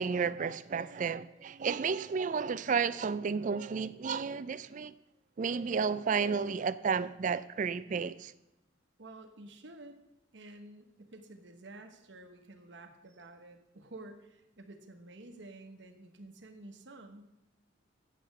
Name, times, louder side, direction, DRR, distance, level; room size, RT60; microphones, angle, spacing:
voice 1, 0.0-5.0 5.4-8.3, right 5 dB, 40° right, 0.3 m, -32 dB
voice 2, 9.0-10.0 10.3-17.3, right 2 dB, 65° right, 1.1 m, -51 dB
8.6 x 7.5 x 6.5 m
head